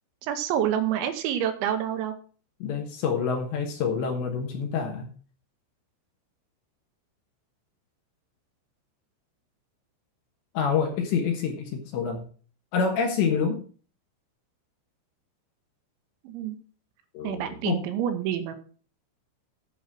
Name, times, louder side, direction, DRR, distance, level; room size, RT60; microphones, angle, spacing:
voice 1, 0.2-2.2 16.2-16.6 17.2-18.5, right 10 dB, 75° right, 8 dB, 3.0 m, -28 dB
voice 2, 2.6-5.1 10.5-12.2 12.7-13.6 17.1-17.8, left 6 dB, 70° left, 2 dB, 3.2 m, -27 dB
11.0 x 5.5 x 6.0 m, 0.41 s
omnidirectional pair, 5.8 m